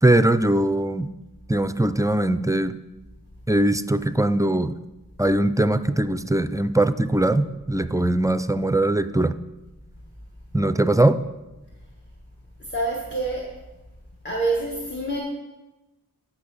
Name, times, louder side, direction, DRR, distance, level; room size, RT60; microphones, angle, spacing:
voice 1, 0.0-1.1 1.5-2.8 3.5-4.8 5.2-9.4 10.5-11.2, right 1 dB, 10° right, 12 dB, 0.4 m, -21 dB
voice 2, 12.6-13.5 14.2-15.2, right 2 dB, 30° left, -3 dB, 1.5 m, -26 dB
15.5 x 5.7 x 4.1 m, 1.1 s
wide cardioid pair, 45°, 37 cm